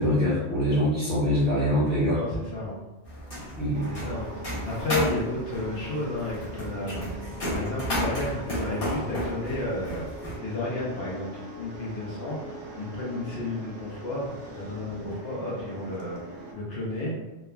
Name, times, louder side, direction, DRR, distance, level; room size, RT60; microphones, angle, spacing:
voice 1, 0.0-2.2 3.6-3.9, equal, ahead, -12 dB, 0.8 m, -24 dB
voice 2, 2.1-2.8 3.9-7.1 7.5-10.1 10.4-16.2 16.5-17.1, left 2 dB, 65° left, -6 dB, 0.8 m, -32 dB
sound 1, 3.0-10.4, equal, 50° left, 1.2 m, -33 dB
sound 2, 3.7-16.5, right 1 dB, 80° right, 1.0 m, -42 dB
3.2 x 2.2 x 2.2 m, 1.1 s
omnidirectional pair, 1.2 m